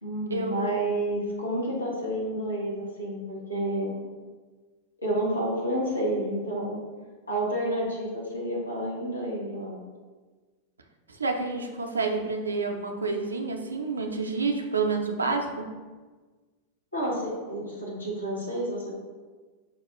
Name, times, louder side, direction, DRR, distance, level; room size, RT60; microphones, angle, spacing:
voice 1, 0.0-4.1 5.0-6.8 7.3-9.8 16.9-18.9, right 1 dB, 80° left, -5 dB, 1.1 m, -30 dB
voice 2, 11.1-15.7, right 4 dB, 75° right, 3 dB, 0.4 m, -29 dB
5.9 x 2.3 x 2.9 m, 1.4 s
figure-of-eight pair, 90°, 0 cm